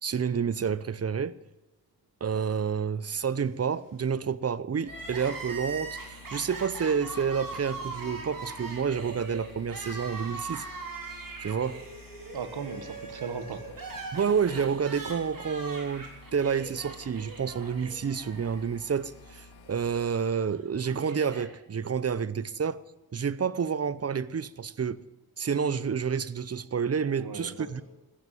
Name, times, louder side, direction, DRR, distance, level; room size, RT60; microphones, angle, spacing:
voice 1, 0.0-1.4 2.2-6.0 6.3-10.6 11.4-11.9 14.1-22.8 23.1-25.0 25.4-27.8, right 6 dB, 40° right, 0.7 m, -29 dB
Crying sobbing, 4.8-19.0 19.3-19.4 20.3-21.5, right 3 dB, 60° right, 3.6 m, -41 dB
sound 1, 4.9-20.1, left 2 dB, 80° left, 1.7 m, -51 dB
voice 2, 12.3-13.8 27.2-27.8, right 6 dB, 80° right, 1.6 m, -37 dB
15.0 x 9.5 x 9.3 m
cardioid pair, 60°, 38 cm